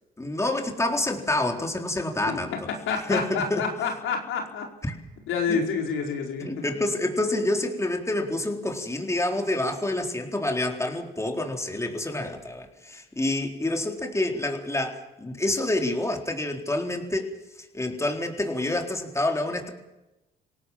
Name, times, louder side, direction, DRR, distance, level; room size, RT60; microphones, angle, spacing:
voice 1, 0.2-2.5 3.1-3.7 4.8-5.0 5.5-5.6 6.4-17.3 17.6-19.7, left 1 dB, 15° left, 3 dB, 4.0 m, -28 dB
voice 2, 2.9-4.7 5.3-6.8, left 5 dB, 90° left, 2 dB, 4.8 m, -28 dB
26.5 x 17.5 x 7.4 m, 0.96 s
cardioid pair, 90°, 20 cm